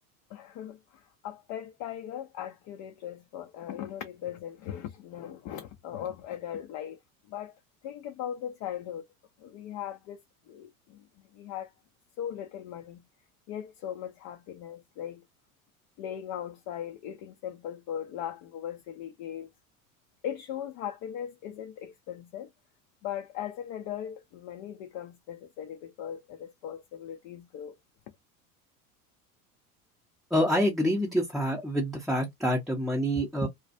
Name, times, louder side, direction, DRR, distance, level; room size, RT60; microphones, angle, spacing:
voice 1, 0.3-7.0 7.3-7.6 7.8-9.0 9.4-10.2 10.5-11.0 11.3-11.7 12.2-13.0 13.5-15.2 16.0-19.5 20.2-22.5 23.0-27.7, left 10 dB, 45° left, 0.5 m, -39 dB
voice 2, 30.3-33.5, equal, ahead, 0.6 m, -27 dB
2.3 x 2.1 x 2.5 m
hypercardioid pair, 75°, 43 cm